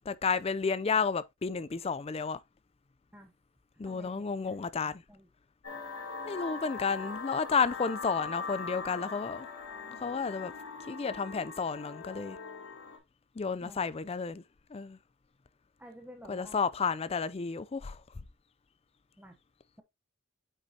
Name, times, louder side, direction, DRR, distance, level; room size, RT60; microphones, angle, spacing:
voice 1, 0.1-2.4 3.8-5.0 6.3-9.5 10.0-10.5 10.9-12.4 13.4-14.4 14.7-15.0 16.3-18.0, left 5 dB, 25° left, 0.4 m, -31 dB
voice 2, 3.8-4.6 5.1-5.3 5.9-6.0 13.6-13.8 15.8-16.6 19.2-19.4, right 1 dB, 5° right, 0.8 m, -51 dB
sound 1, 5.6-13.0, left 4 dB, 70° left, 2.9 m, -41 dB
8.3 x 5.3 x 2.7 m
head